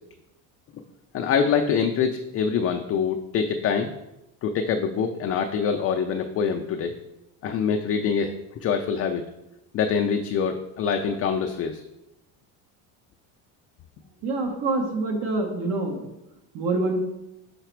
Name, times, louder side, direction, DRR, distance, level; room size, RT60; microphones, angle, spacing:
voice 1, 1.1-3.9 4.4-6.9 7.4-8.3 8.6-9.3 9.7-11.8, left 6 dB, 35° left, 4 dB, 0.4 m, -25 dB
voice 2, 14.2-16.1 16.5-17.0, right 2 dB, 60° right, 2 dB, 1.1 m, -26 dB
5.8 x 4.0 x 4.5 m, 0.90 s
cardioid pair, 125°, 42 cm